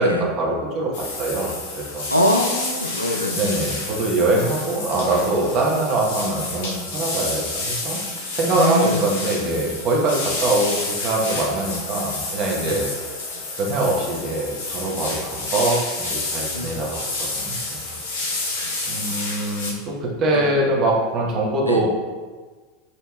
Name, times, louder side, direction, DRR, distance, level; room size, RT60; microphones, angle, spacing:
voice 1, 0.0-2.1 3.3-8.0 8.4-12.9 13.6-17.1 17.3-17.8 18.9-21.9, right 2 dB, 40° right, -2 dB, 0.9 m, -23 dB
sound 1, 0.9-19.7, left 2 dB, 60° left, 0.8 m, -29 dB
voice 2, 2.1-3.4 8.5-9.0 12.6-12.8 16.5-16.7 20.3-20.4 21.6-21.8, left 1 dB, 90° left, 4 dB, 0.3 m, -23 dB
5.3 x 2.7 x 2.3 m, 1.4 s
figure-of-eight pair, 80°, 0 cm